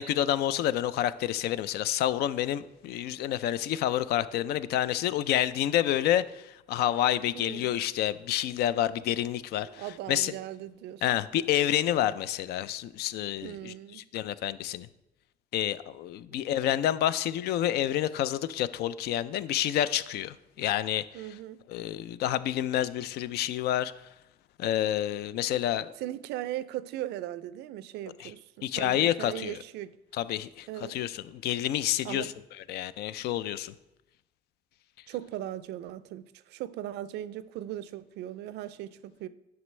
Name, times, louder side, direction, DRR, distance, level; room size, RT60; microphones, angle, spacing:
voice 1, 0.0-10.3 11.0-14.9 15.5-21.2 21.7-23.9 24.6-25.9 28.2-28.3 28.6-29.6 30.1-33.7, left 12 dB, 70° left, 0.4 m, -29 dB
voice 2, 7.3-7.7 9.7-11.0 13.4-14.0 21.1-21.6 26.0-29.9 30.7-31.0 32.0-32.3 35.1-39.3, right 13 dB, 80° right, 0.4 m, -38 dB
9.3 x 6.0 x 3.2 m
cardioid pair, 110°, 17 cm